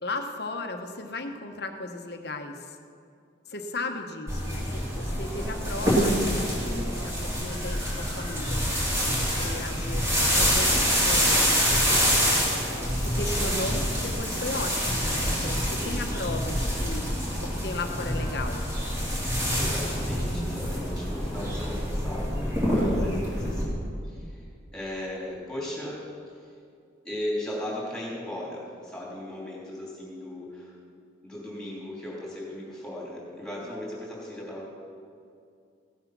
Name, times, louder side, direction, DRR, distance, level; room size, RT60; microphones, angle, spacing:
voice 1, 0.0-2.8 3.5-11.5 12.6-17.1 17.4-18.6, left 2 dB, 55° left, 5 dB, 1.0 m, -36 dB
sound 1, 4.3-23.6, equal, 15° right, 2.8 m, -26 dB
voice 2, 6.4-7.1 15.8-16.4 16.7-17.3 19.5-23.8 24.0-24.4 24.7-26.0 26.3-26.5 27.0-30.7 31.2-34.7, left 1 dB, 5° left, -6 dB, 3.3 m, -37 dB
16.5 x 8.0 x 6.0 m, 2.4 s
head